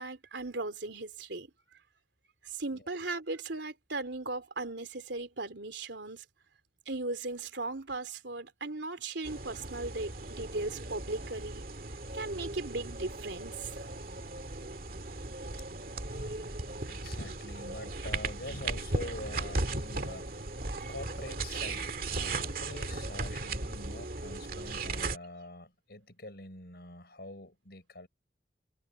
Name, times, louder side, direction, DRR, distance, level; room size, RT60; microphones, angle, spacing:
voice 1, 0.0-1.8 2.4-6.2 6.8-11.6 12.1-13.9, right 2 dB, 80° right, 3.1 m, -37 dB
sound 1, 9.2-25.2, right 2 dB, 50° right, 2.1 m, -37 dB
voice 2, 16.0-20.5 20.8-28.1, left 1 dB, 60° left, 5.7 m, -45 dB
head